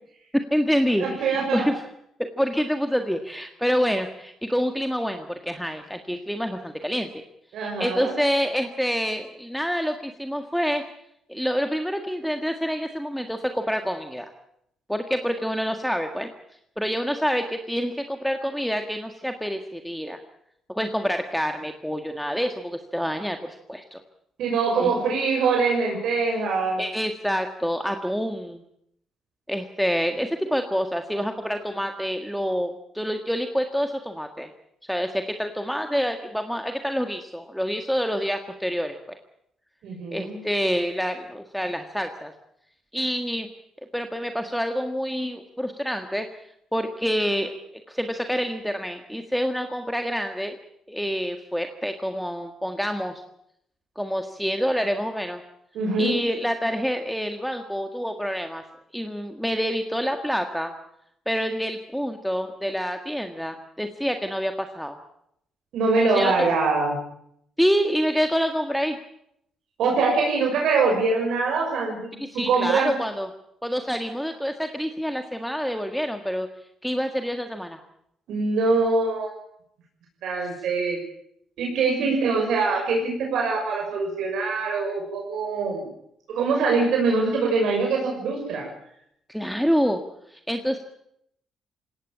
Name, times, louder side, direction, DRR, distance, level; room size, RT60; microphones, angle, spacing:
voice 1, 0.3-1.7 2.2-7.2 7.6-10.9 11.3-14.3 14.9-16.3 16.8-20.2 20.7-24.0 24.8-24.9 26.8-28.6 29.5-34.5 34.9-39.2 40.1-42.3 42.9-43.5 43.9-46.3 46.7-47.5 47.9-50.6 50.9-53.2 54.0-55.4 56.0-58.6 58.9-60.7 61.3-65.0 66.0-66.5 67.6-69.0 72.2-73.3 73.6-76.5 76.8-77.8 82.0-82.2 89.3-90.0 90.3-90.8, equal, ahead, 5 dB, 1.7 m, -27 dB
voice 2, 1.0-1.7 7.5-8.2 24.4-26.8 39.8-40.4 55.7-56.2 65.7-66.9 69.8-72.9 78.3-79.3 80.2-81.0 81.6-85.9 86.3-88.7, right 4 dB, 75° right, 0 dB, 6.3 m, -23 dB
20.5 x 17.5 x 8.7 m, 0.74 s
cardioid pair, 90°, 0 cm